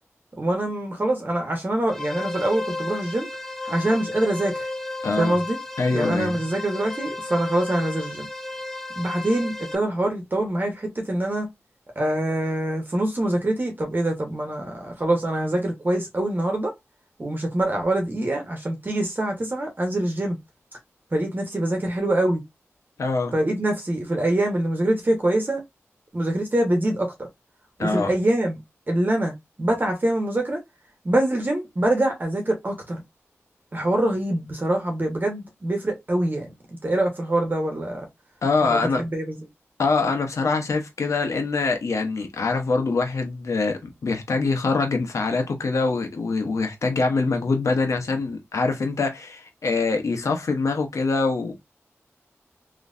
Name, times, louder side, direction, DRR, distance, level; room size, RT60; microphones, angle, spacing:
voice 1, 0.4-3.3 3.6-4.7 5.2-5.6 5.9-8.3 8.9-11.5 11.9-16.7 17.2-20.4 21.1-22.4 23.3-25.6 26.1-27.1 27.8-28.6 28.9-30.6 31.0-33.0 33.7-38.0 38.6-39.4, right 1 dB, 40° right, 1.2 m, -24 dB
sound 1, 1.9-9.7, left 2 dB, 5° left, 0.6 m, -33 dB
voice 2, 5.0-5.3 5.8-6.4 23.0-23.3 27.8-28.1 38.4-39.0 39.8-51.5, left 3 dB, 85° left, 1.0 m, -24 dB
3.2 x 3.0 x 2.6 m
wide cardioid pair, 60°, 5 cm